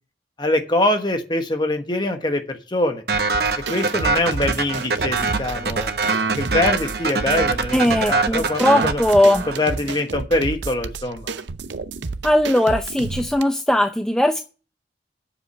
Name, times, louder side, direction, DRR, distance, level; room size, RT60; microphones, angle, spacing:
voice 1, 0.4-3.0 3.7-5.9 6.4-7.8 8.1-9.0 9.5-11.3, left 1 dB, 25° left, 5 dB, 1.2 m, -23 dB
sound 1, 3.1-9.8, right 4 dB, 60° right, 0.9 m, -23 dB
sound 2, 3.1-13.4, right 4 dB, 85° right, 0.7 m, -31 dB
sound 3, 5.0-11.3, right 3 dB, 40° left, 2.1 m, -46 dB
voice 2, 7.7-9.4 12.2-14.4, left 1 dB, 5° left, 6 dB, 0.5 m, -18 dB
8.0 x 7.2 x 7.9 m, 0.37 s
head